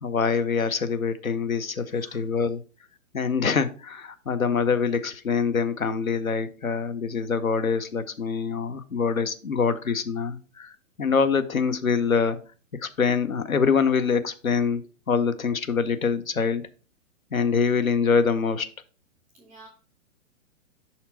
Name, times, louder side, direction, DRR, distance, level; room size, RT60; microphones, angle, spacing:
voice 1, 0.0-2.6 3.1-10.7 11.0-12.4 12.8-16.6 17.3-18.7, left 5 dB, 90° left, 11 dB, 0.8 m, -25 dB
voice 2, 1.9-2.3 19.3-19.7, right 2 dB, 5° right, -4 dB, 0.3 m, -50 dB
5.9 x 4.3 x 4.1 m, 0.37 s
figure-of-eight pair, 120°, 41 cm